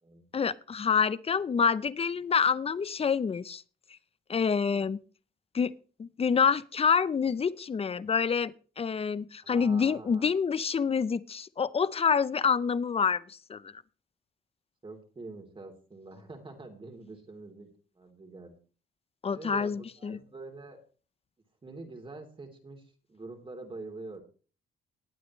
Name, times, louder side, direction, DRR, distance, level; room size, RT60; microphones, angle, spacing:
voice 1, 0.3-3.6 4.3-5.0 5.5-5.7 6.0-13.7 19.2-20.2, left 6 dB, 30° left, 18 dB, 0.6 m, -27 dB
voice 2, 9.4-10.3 14.8-17.7 17.9-18.5 19.3-20.8 21.6-24.2, right 3 dB, 25° right, 4 dB, 3.2 m, -45 dB
19.5 x 8.6 x 3.2 m, 0.38 s
cardioid pair, 90°, 20 cm